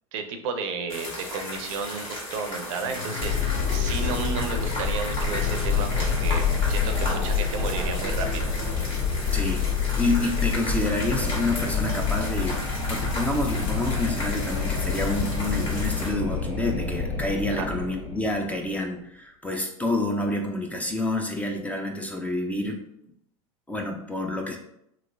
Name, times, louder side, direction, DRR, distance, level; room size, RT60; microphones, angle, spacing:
voice 1, 0.1-8.5 17.5-17.7, right 5 dB, 65° right, 6 dB, 0.6 m, -33 dB
sound 1, 0.9-16.1, left 1 dB, 30° left, 1.3 m, -35 dB
sound 2, 2.8-12.6 12.9-13.0 15.5-15.6, left 7 dB, 80° left, 0.5 m, -40 dB
Wind, 3.2-18.5, left 5 dB, 60° left, 1.3 m, -27 dB
voice 2, 9.3-9.6 10.0-22.8 23.7-24.6, left 2 dB, 10° left, 2 dB, 0.5 m, -28 dB
2.9 x 2.9 x 2.6 m, 0.75 s
hypercardioid pair, 105°, 18 cm